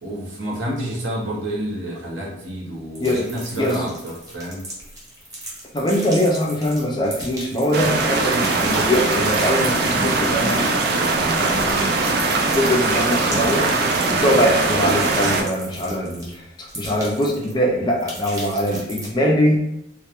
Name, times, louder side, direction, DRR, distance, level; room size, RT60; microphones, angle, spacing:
voice 1, 0.0-4.6, equal, 75° right, -4 dB, 0.8 m, -29 dB
sound 1, 3.0-8.0 8.3-16.3 16.7-17.6 17.9-19.1, right 1 dB, 20° right, 0.6 m, -36 dB
voice 2, 3.5-3.9 5.7-10.8 11.4-12.0 12.5-19.8, equal, 20° left, -1 dB, 0.4 m, -22 dB
sound 2, 7.7-15.4, right 3 dB, 50° right, 0.3 m, -21 dB
2.2 x 2.2 x 2.8 m, 0.84 s
head